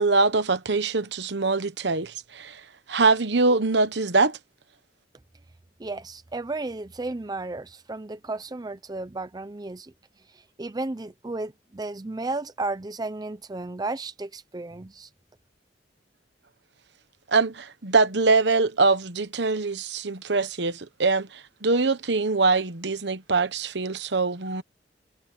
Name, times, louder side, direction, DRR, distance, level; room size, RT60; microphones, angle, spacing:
voice 1, 0.0-2.6 2.9-4.4 17.3-24.6, right 3 dB, 65° right, 1.1 m, -23 dB
voice 2, 5.8-9.9 10.6-15.1, right 2 dB, 20° right, 0.5 m, -33 dB
head